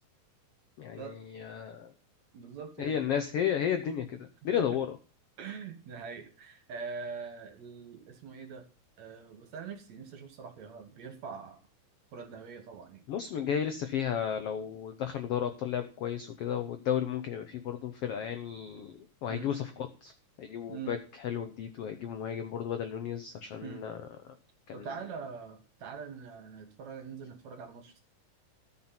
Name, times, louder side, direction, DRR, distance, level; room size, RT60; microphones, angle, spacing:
voice 1, 0.8-1.9 2.8-5.0 13.1-19.6 20.0-20.1 20.4-24.0 24.7-24.9, left 9 dB, 80° left, 8 dB, 1.3 m, -33 dB
voice 2, 2.3-3.2 4.6-4.7 5.4-8.6 9.0-11.6 12.1-13.0 19.3-19.5 20.7-21.0 23.6-23.9 24.7-28.0, right 5 dB, 60° right, 6 dB, 2.7 m, -43 dB
13.5 x 6.1 x 5.8 m, 0.35 s
omnidirectional pair, 3.9 m